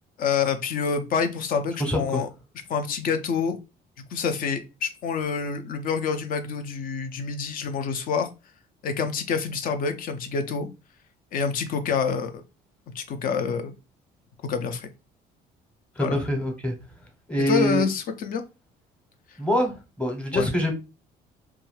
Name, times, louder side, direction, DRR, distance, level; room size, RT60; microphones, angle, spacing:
voice 1, 0.2-2.3 2.7-3.6 4.1-8.3 8.8-10.7 11.3-12.3 12.9-13.7 14.4-14.9 16.0-16.2 17.5-18.4 20.3-20.5, left 5 dB, 55° left, 0.5 m, -27 dB
voice 2, 1.8-2.2 16.0-16.7 17.3-17.9 19.4-20.7, equal, 5° left, 0.8 m, -25 dB
2.6 x 2.3 x 3.1 m
cardioid pair, 110°, 17 cm